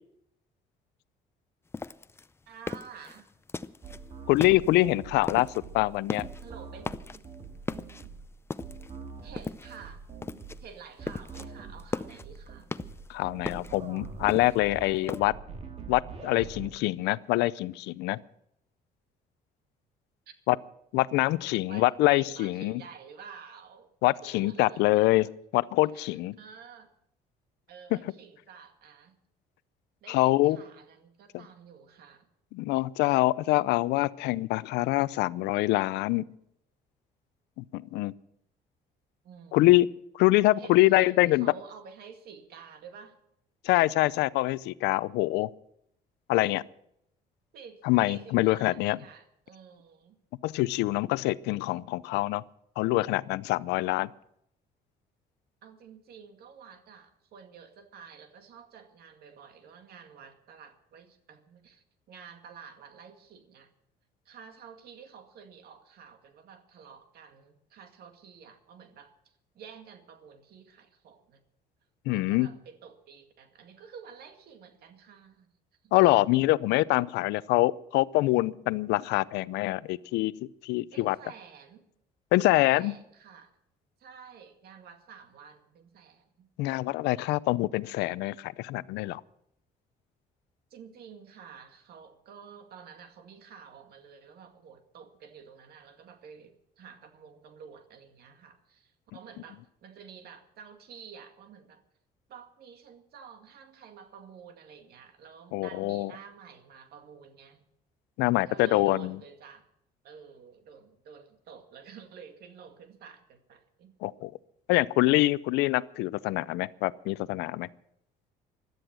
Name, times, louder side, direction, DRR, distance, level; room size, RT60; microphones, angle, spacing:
sound 1, 1.7-4.0 4.4-4.9 5.2-5.6 6.0-6.5 6.8-7.3 7.7-9.0 9.4-9.9 10.2-10.6 10.9-11.5 11.8-13.1 13.5-15.2, left 3 dB, 15° left, 0.5 m, -37 dB
voice 1, 2.5-3.3 6.4-6.9 9.2-10.0 10.6-12.7 20.3-20.4 21.7-23.9 24.2-25.1 25.9-26.9 27.7-29.2 30.0-32.3 39.2-39.7 40.6-43.2 47.5-50.2 55.6-63.7 64.3-71.4 72.1-75.5 75.8-75.9 80.9-81.8 82.5-83.5 84.0-86.5 90.7-101.8 102.3-107.6 108.5-109.7 110.0-113.9, right 6 dB, 65° right, 7 dB, 2.1 m, -50 dB
sound 2, 3.8-16.7, right 5 dB, 40° right, 2.2 m, -44 dB
voice 2, 4.3-5.5 5.7-6.3 13.1-15.3 15.9-18.2 20.5-20.6 20.9-22.8 24.0-26.4 30.1-30.6 32.5-36.3 37.6-38.1 39.5-39.9 40.1-41.5 43.6-45.5 46.3-46.6 47.8-49.0 50.4-52.4 52.8-54.1 72.1-72.5 75.9-80.3 80.6-81.2 82.3-82.9 86.6-89.2 105.5-106.1 108.2-109.1 114.0-114.3 114.7-117.7, left 18 dB, 90° left, 19 dB, 0.5 m, -25 dB
17.0 x 12.0 x 6.2 m, 0.76 s
cardioid pair, 110°, 17 cm